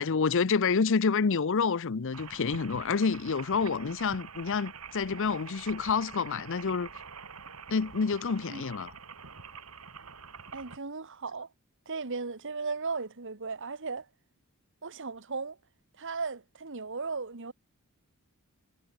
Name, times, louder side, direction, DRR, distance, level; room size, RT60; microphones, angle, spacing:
voice 1, 0.0-6.9 7.7-8.9, left 5 dB, 65° left, 0.6 m, -28 dB
sound 1, 2.1-10.8, right 5 dB, 85° right, 3.5 m, -46 dB
voice 2, 10.5-11.5 11.8-14.1 14.8-15.6 16.0-17.5, right 4 dB, 60° right, 1.6 m, -36 dB
head